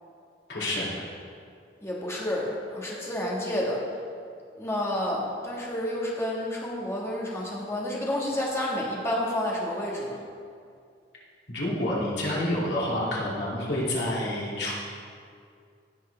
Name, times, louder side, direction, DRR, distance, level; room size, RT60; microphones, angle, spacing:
voice 1, 0.5-1.0 11.5-14.7, left 1 dB, 70° left, -6 dB, 2.7 m, -28 dB
voice 2, 1.8-3.8 4.6-10.2, left 1 dB, 15° left, -4 dB, 1.6 m, -30 dB
16.0 x 6.3 x 3.4 m, 2.3 s
head